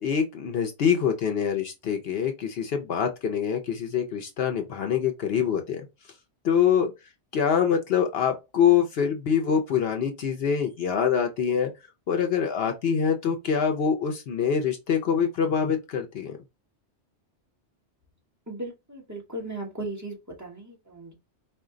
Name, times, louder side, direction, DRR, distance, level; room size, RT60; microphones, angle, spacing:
voice 1, 0.0-5.8 6.4-6.9 7.3-11.7 12.1-16.4, left 7 dB, 65° left, 0.8 m, -25 dB
voice 2, 18.5-21.1, right 2 dB, 15° right, 1.2 m, -37 dB
4.4 x 2.2 x 3.6 m
omnidirectional pair, 1.2 m